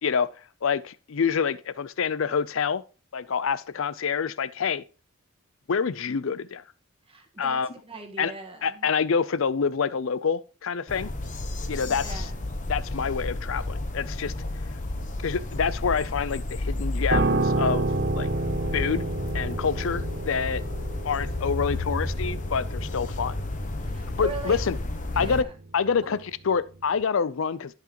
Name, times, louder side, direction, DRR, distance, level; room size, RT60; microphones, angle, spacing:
voice 1, 0.6-2.8 3.1-4.8 5.7-6.6 7.4-7.7 8.2-8.3 8.6-11.1 11.7-12.3 12.7-14.3 15.2-17.9 18.2-18.3 18.7-19.1 19.3-20.6 21.0-23.3 24.2-24.8 25.2-25.4 25.7-27.8, left 6 dB, 65° left, 0.5 m, -27 dB
voice 2, 7.1-8.9 11.8-12.6 23.8-24.6 25.1-25.5 26.0-26.2, right 2 dB, 25° right, 1.4 m, -40 dB
sound 1, 10.9-25.4, left 2 dB, 35° left, 0.9 m, -32 dB
Piano, 17.1-26.5 26.8-27.0, right 3 dB, 45° right, 0.6 m, -31 dB
14.0 x 5.9 x 3.0 m
head